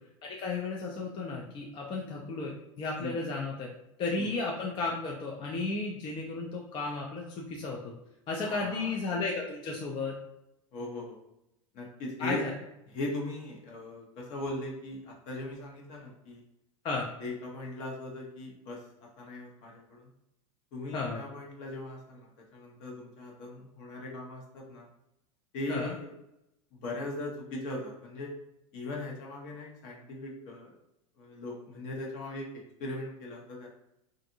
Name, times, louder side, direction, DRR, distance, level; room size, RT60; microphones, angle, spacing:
voice 1, 0.2-3.7 4.0-7.9 8.3-10.1 12.2-12.5 16.8-17.0 20.9-21.2 25.7-25.9, left 3 dB, 30° left, -1 dB, 0.4 m, -34 dB
voice 2, 8.4-8.9 10.7-11.2 11.7-12.5 12.9-16.4 17.2-20.1 20.7-24.9 25.5-26.1 26.8-28.3 28.7-30.7 31.2-32.5 32.8-33.7, left 2 dB, 55° left, -1 dB, 0.9 m, -39 dB
2.5 x 2.5 x 2.6 m, 0.87 s
hypercardioid pair, 105°, 16 cm